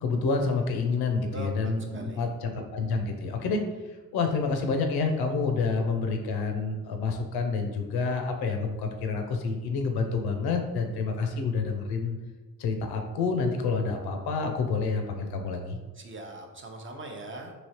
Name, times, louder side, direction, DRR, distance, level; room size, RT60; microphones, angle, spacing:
voice 1, 0.0-3.6 4.1-12.2 12.6-15.8, left 4 dB, 80° left, 4 dB, 0.6 m, -28 dB
voice 2, 1.3-2.3 16.0-17.5, right 1 dB, 30° right, 2 dB, 0.6 m, -41 dB
3.1 x 2.9 x 2.8 m, 1.2 s
supercardioid pair, 55°, 38 cm